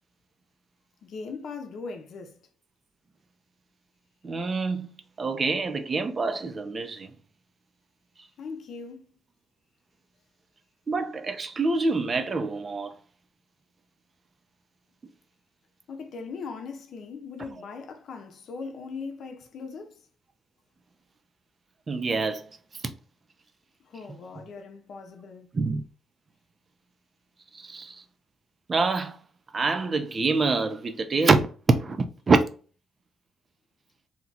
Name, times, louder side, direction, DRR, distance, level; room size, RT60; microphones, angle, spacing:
voice 1, 1.0-2.3 8.4-9.1 15.9-20.0 23.9-25.5, left 4 dB, 65° left, 0.7 m, -39 dB
voice 2, 4.2-4.9 5.2-7.1 10.9-12.9 21.9-22.4 22.8-22.9 25.5-25.8 27.5-28.0 28.7-29.2 29.5-32.4, right 3 dB, 35° right, 0.5 m, -25 dB
2.9 x 2.3 x 3.9 m
cardioid pair, 90°, 0 cm